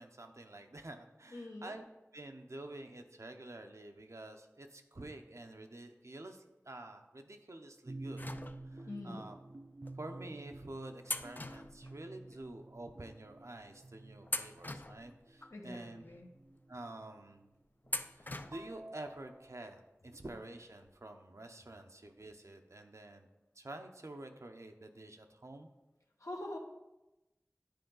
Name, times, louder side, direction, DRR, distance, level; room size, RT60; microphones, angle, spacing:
voice 1, 0.0-1.9 2.1-8.3 8.7-9.4 9.9-16.0 16.7-17.5 18.1-23.3 23.6-25.7, right 2 dB, 70° right, 5 dB, 0.7 m, -49 dB
voice 2, 1.3-1.7 8.8-9.3 15.5-16.3 26.2-26.6, left 1 dB, 80° left, 1 dB, 1.1 m, -44 dB
sound 1, 7.8-17.0 17.8-19.7, right 2 dB, 40° right, 0.4 m, -51 dB
sound 2, 8.2-9.0 9.8-10.0 11.0-12.5 12.8-12.9 13.6-13.8 14.2-15.6 16.1-16.2 17.9-18.8 19.1-19.2 20.4-20.5 20.8-20.9, left 2 dB, 35° left, 0.4 m, -42 dB
10.5 x 4.5 x 3.9 m, 0.98 s
wide cardioid pair, 40°, 5 cm